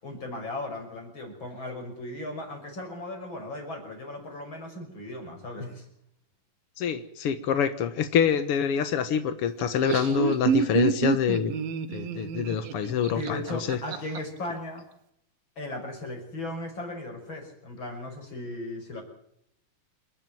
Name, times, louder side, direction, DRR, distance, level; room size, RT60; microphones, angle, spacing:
voice 1, 0.0-5.9 10.1-10.3 13.1-14.9 15.6-19.0, left 1 dB, 30° left, 4 dB, 6.3 m, -37 dB
voice 2, 6.8-11.6 11.9-13.8, left 7 dB, 60° left, 9 dB, 1.6 m, -26 dB
Laughter, 9.6-14.2, right 7 dB, 85° right, 3.3 m, -28 dB
28.0 x 11.0 x 9.3 m, 0.75 s
omnidirectional pair, 4.1 m